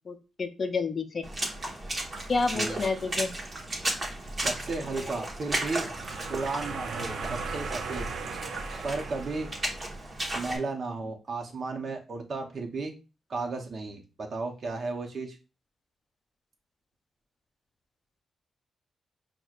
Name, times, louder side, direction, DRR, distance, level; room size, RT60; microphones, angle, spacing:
voice 1, 0.1-1.2 2.3-3.3 5.0-5.1, left 4 dB, 40° left, 9 dB, 0.5 m, -29 dB
Water / Splash splatter, 1.2-10.6, right 1 dB, 30° right, 1.1 m, -34 dB
voice 2, 4.4-5.9 6.3-8.1 8.8-9.5 10.3-13.0 13.3-15.4, right 3 dB, 45° right, 2 dB, 0.8 m, -34 dB
sound 1, 5.3-10.1, right 5 dB, 80° right, 0.5 m, -38 dB
6.0 x 2.2 x 2.4 m, 0.31 s
wide cardioid pair, 130°, 0 cm